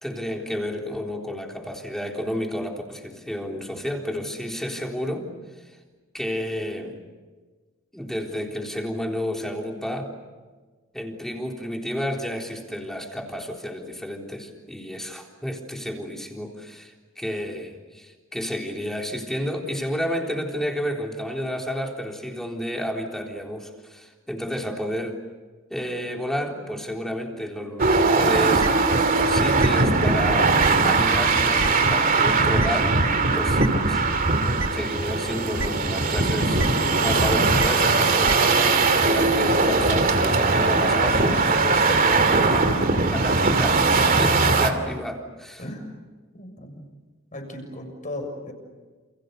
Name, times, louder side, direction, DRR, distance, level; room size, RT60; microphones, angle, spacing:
voice 1, 0.0-5.3 5.6-5.8 6.1-7.0 7.9-10.1 10.9-25.2 25.7-28.7 29.2-33.0 33.3-34.0 34.7-36.6 37.0-38.5 39.0-43.9 44.2-45.6, equal, ahead, 1 dB, 3.8 m, -31 dB
sound 1, 27.8-44.7, right 3 dB, 45° right, 2.7 m, -20 dB
sound 2, 28.6-28.7 29.6-29.7 30.6-30.7 31.6-31.7 32.6-32.7 33.6-33.7 34.6-34.7 35.6-35.7 36.6-36.7 37.6-37.7 38.3-38.4, right 2 dB, 75° right, 1.5 m, -27 dB
voice 2, 46.3-46.8 47.3-48.5, left 1 dB, 40° left, 4 dB, 7.0 m, -36 dB
29.0 x 29.0 x 6.9 m, 1.3 s
head